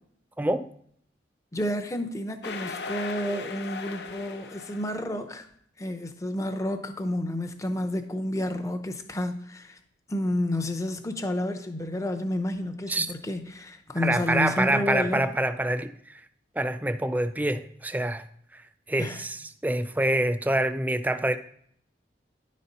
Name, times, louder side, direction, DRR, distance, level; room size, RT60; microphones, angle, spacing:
voice 1, 1.5-5.5 5.8-9.8 10.1-15.2 19.0-19.2, left 1 dB, 20° left, 0.7 m, -30 dB
sound 1, 2.4-5.0, left 4 dB, 65° left, 0.7 m, -37 dB
voice 2, 14.0-16.2 16.6-18.2 18.5-18.6 18.9-21.4, right 1 dB, 10° right, 0.4 m, -26 dB
10.5 x 4.2 x 5.3 m
head